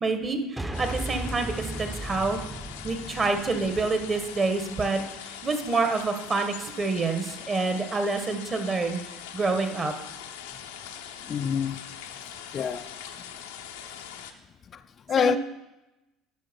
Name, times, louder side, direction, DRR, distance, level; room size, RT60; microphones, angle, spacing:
voice 1, 0.0-2.4 2.8-9.0 9.3-9.9 15.2-15.4, right 3 dB, 35° right, 1.6 m, -27 dB
sound 1, 0.6-5.0, right 1 dB, 10° right, 0.8 m, -37 dB
sound 2, 0.7-14.3, left 9 dB, 80° left, 0.7 m, -42 dB
voice 2, 11.3-11.8 12.5-12.9 15.1-15.4, left 7 dB, 45° left, 0.4 m, -25 dB
11.5 x 5.0 x 5.3 m
hypercardioid pair, 65°, 0 cm